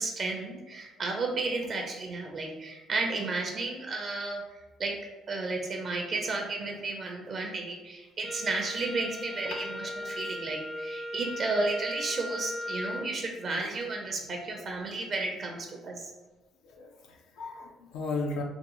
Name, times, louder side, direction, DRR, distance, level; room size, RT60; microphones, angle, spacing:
voice 1, 0.0-4.5 4.8-16.1, right 3 dB, 50° right, 2 dB, 0.5 m, -33 dB
Wind instrument woodwind instrument, 8.2-13.1, left 1 dB, 15° left, 0.4 m, -38 dB
voice 2, 16.6-18.4, left 3 dB, 85° left, 1 dB, 0.4 m, -35 dB
3.5 x 2.3 x 3.0 m, 1.1 s
cardioid pair, 95°, 0 cm